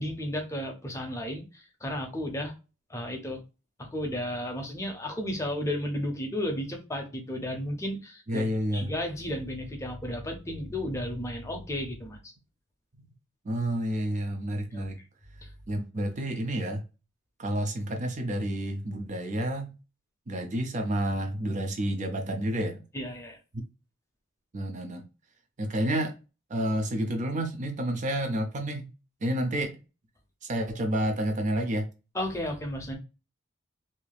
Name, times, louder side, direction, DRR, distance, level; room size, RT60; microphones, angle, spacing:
voice 1, 0.0-2.5 2.9-3.4 3.8-8.5 8.7-12.3 14.7-14.9 15.4-15.5 22.9-23.4 32.1-32.9, left 1 dB, 15° left, 0.6 m, -33 dB
voice 2, 8.3-8.9 13.4-15.0 15.7-16.8 17.4-19.7 20.3-22.8 24.5-25.0 25.6-26.1 26.5-28.9 29.2-29.8 30.4-31.9, right 1 dB, 35° right, 0.5 m, -29 dB
3.3 x 2.8 x 2.2 m
head